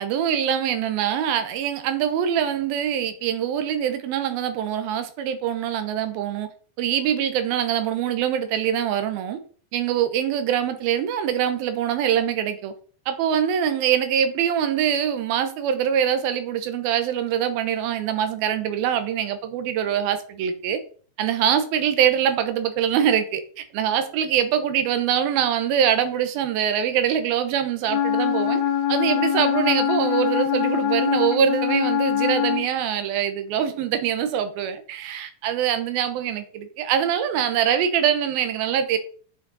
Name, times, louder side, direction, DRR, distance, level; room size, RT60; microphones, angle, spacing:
voice 1, 0.0-6.5 6.8-9.4 9.7-12.7 13.1-20.8 21.2-28.6 28.9-39.0, right 9 dB, 85° right, 2.9 m, -23 dB
Wind instrument woodwind instrument, 27.9-32.7, left 9 dB, 80° left, 2.8 m, -23 dB
8.2 x 6.1 x 4.1 m
omnidirectional pair, 4.1 m